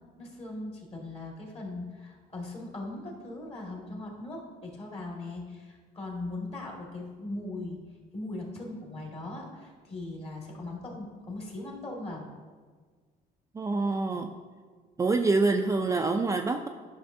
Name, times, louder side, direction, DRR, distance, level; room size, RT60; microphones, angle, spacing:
voice 1, 0.2-7.8 8.1-12.3, left 2 dB, 35° left, -1 dB, 1.8 m, -39 dB
voice 2, 13.5-14.3 15.0-16.7, right 3 dB, 20° right, 4 dB, 0.3 m, -26 dB
11.5 x 5.7 x 2.6 m, 1.5 s
cardioid pair, 110°, 17 cm